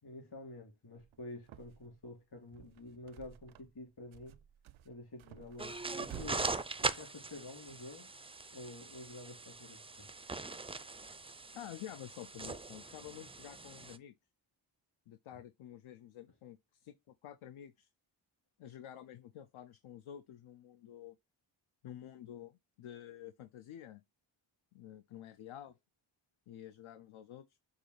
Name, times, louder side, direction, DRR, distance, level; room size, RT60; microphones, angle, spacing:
voice 1, 0.0-4.4 4.8-6.5 6.8-8.1 8.5-10.1, left 2 dB, 50° left, 3.1 m, -49 dB
sound 1, 1.0-2.0 2.4-3.8 4.1-6.4, right 12 dB, 75° right, 0.5 m, -53 dB
sound 2, 5.6-14.0, right 3 dB, 15° right, 0.4 m, -41 dB
voice 2, 11.5-14.1 15.1-17.9 18.6-21.2 21.8-24.0 24.7-25.7 26.5-27.6, left 11 dB, 75° left, 0.5 m, -50 dB
6.5 x 2.4 x 3.2 m
cardioid pair, 55°, 49 cm